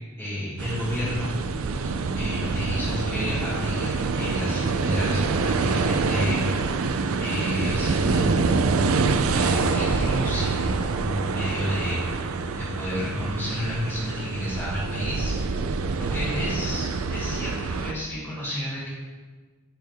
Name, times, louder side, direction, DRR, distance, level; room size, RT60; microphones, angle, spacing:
voice 1, 0.2-1.3 1.6-1.8 2.1-6.4 7.2-15.3 16.0-18.9, left 1 dB, 15° left, -12 dB, 1.8 m, -31 dB
sound 1, 0.6-17.9, right 4 dB, 80° right, 0.4 m, -26 dB
10.5 x 4.5 x 3.5 m, 1.4 s
head